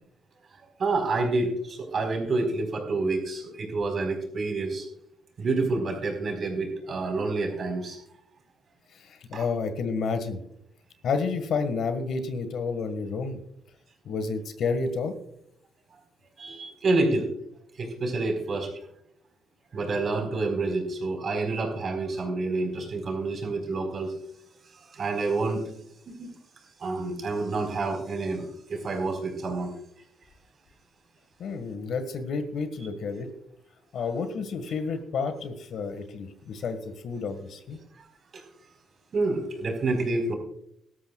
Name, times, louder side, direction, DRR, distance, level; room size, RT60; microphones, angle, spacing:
voice 1, 0.8-4.8 5.4-8.0 9.3-9.4 16.4-17.3 17.8-18.7 19.7-24.1 24.9-25.7 26.1-26.3 26.8-29.7 38.0-38.1 38.3-38.4 39.1-40.3, right 3 dB, 50° right, 3 dB, 4.4 m, -28 dB
voice 2, 9.1-10.4 11.0-13.4 14.0-15.1 31.4-33.3 33.9-37.8, left 4 dB, 70° left, 9 dB, 1.6 m, -30 dB
18.5 x 13.0 x 2.4 m, 0.74 s
cardioid pair, 90°, 0 cm